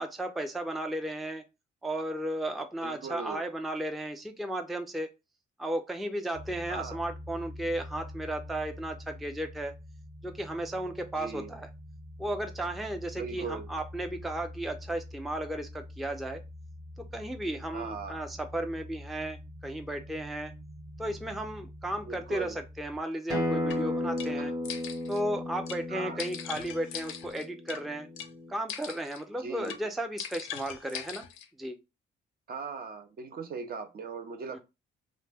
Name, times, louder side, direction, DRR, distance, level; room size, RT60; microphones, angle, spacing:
voice 1, 0.0-1.4 1.8-5.1 5.6-9.7 10.2-11.7 12.2-16.4 17.1-20.5 21.0-24.5 25.1-28.1 28.5-31.3 31.6-31.8 34.5-34.6, right 1 dB, ahead, 0.4 m, -34 dB
voice 2, 2.8-3.4 6.7-7.0 11.1-11.5 13.2-13.7 17.7-18.2 22.1-22.6 24.4-24.5 25.9-26.2 29.3-29.8 32.5-34.6, right 5 dB, 50° right, 0.6 m, -39 dB
sound 1, 6.3-23.0, left 1 dB, 85° right, 1.1 m, -46 dB
Acoustic guitar, 23.3-28.5, left 1 dB, 15° right, 1.0 m, -34 dB
sound 2, 23.7-23.8 24.2-24.3 24.6-25.2 25.7-25.8 26.2-27.8 28.2-28.3 28.7-29.2 29.6-29.8 30.2-31.5, left 9 dB, 90° left, 0.5 m, -40 dB
2.6 x 2.1 x 3.4 m
cardioid pair, 90°, 20 cm